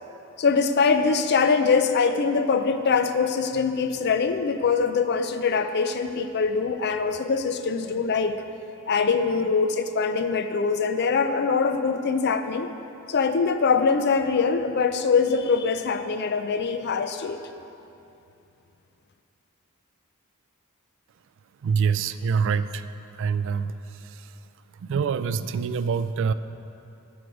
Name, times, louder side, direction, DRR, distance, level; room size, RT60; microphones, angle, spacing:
voice 1, 0.4-8.4 8.9-12.7 13.1-17.4, left 5 dB, 50° left, 9 dB, 0.5 m, -23 dB
voice 2, 21.6-22.9 23.2-24.3 24.8-26.3, right 6 dB, 60° right, 13 dB, 0.3 m, -25 dB
9.3 x 6.2 x 5.1 m, 2.7 s
head